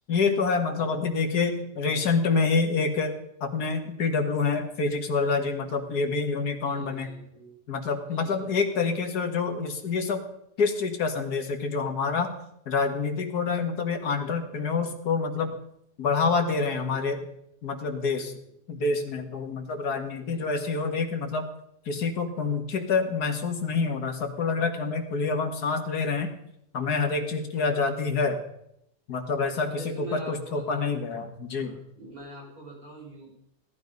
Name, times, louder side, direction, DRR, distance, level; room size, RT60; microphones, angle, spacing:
voice 1, 0.1-3.1 3.4-7.1 7.7-10.2 10.6-12.3 12.7-15.6 16.0-17.2 17.6-18.4 18.7-21.5 21.9-26.3 26.7-28.4 29.1-31.8, left 4 dB, 75° left, 5 dB, 2.3 m, -27 dB
voice 2, 0.7-1.1 1.7-2.2 6.5-7.6 8.0-8.8 16.6-17.0 17.9-18.5 20.2-20.6 27.2-27.8 29.4-31.0 31.5-33.4, right 1 dB, 60° right, -2 dB, 6.3 m, -46 dB
17.5 x 12.5 x 5.3 m, 0.77 s
omnidirectional pair, 1.7 m